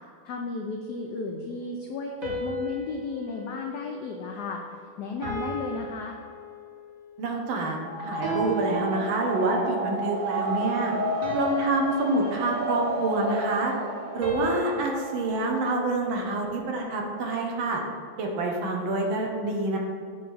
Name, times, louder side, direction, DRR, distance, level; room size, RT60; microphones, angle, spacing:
voice 1, 0.2-4.6 5.0-6.2, left 4 dB, 85° left, 2 dB, 0.8 m, -34 dB
sound 1, 2.2-4.7 5.2-7.0 8.2-9.7 11.2-13.1 14.2-16.6, right 1 dB, 45° right, 1.5 m, -36 dB
voice 2, 7.2-10.9 11.3-13.7 14.1-17.8 18.2-19.8, right 2 dB, 75° right, 1 dB, 1.7 m, -27 dB
sound 2, 7.7-15.3, right 1 dB, 90° right, 2.2 m, -32 dB
7.6 x 3.2 x 5.4 m, 2.3 s
omnidirectional pair, 2.3 m